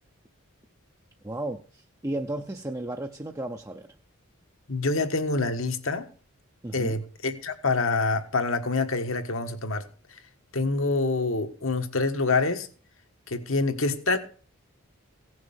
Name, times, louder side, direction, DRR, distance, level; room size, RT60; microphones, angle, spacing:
voice 1, 1.2-3.9 6.6-7.0, right 1 dB, 15° right, 0.6 m, -34 dB
voice 2, 4.7-6.1 6.7-9.9 10.5-12.7 13.3-14.2, left 3 dB, 65° left, 1.5 m, -26 dB
16.5 x 6.4 x 7.0 m
head